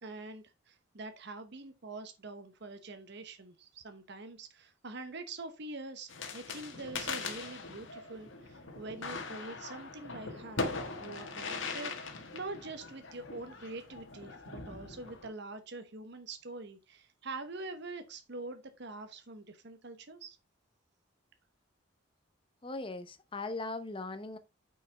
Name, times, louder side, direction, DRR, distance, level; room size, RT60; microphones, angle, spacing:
voice 1, 0.0-20.4, right 3 dB, 55° right, 0.9 m, -45 dB
sound 1, 6.1-15.3, left 3 dB, 65° left, 1.6 m, -41 dB
voice 2, 22.6-24.4, left 2 dB, 25° left, 0.9 m, -39 dB
9.0 x 5.5 x 3.4 m
head